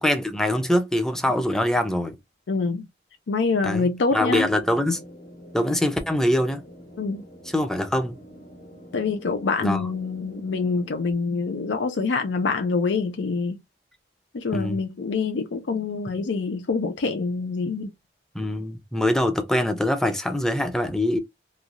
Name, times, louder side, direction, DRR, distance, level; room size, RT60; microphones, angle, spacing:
voice 1, 0.0-2.2 3.6-3.9 4.1-5.0 5.5-6.6 7.5-8.2 9.6-9.8 14.5-14.8 18.3-21.2, left 1 dB, 5° left, 0.5 m, -23 dB
voice 2, 2.5-2.9 3.3-4.5 7.0-7.2 8.9-13.6 14.3-17.9, left 4 dB, 90° left, 0.5 m, -25 dB
sound 1, 4.2-11.1, equal, 55° left, 1.2 m, -46 dB
3.1 x 2.3 x 2.5 m
head